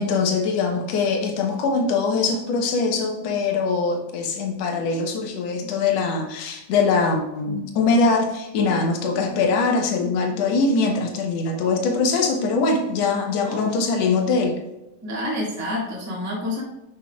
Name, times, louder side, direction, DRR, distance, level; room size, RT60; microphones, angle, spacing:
voice 1, 0.0-14.6, left 4 dB, 65° left, 3 dB, 1.7 m, -22 dB
voice 2, 13.4-13.7 15.0-16.6, left 1 dB, 15° right, -4 dB, 0.6 m, -28 dB
10.5 x 5.7 x 2.3 m, 0.91 s
omnidirectional pair, 3.9 m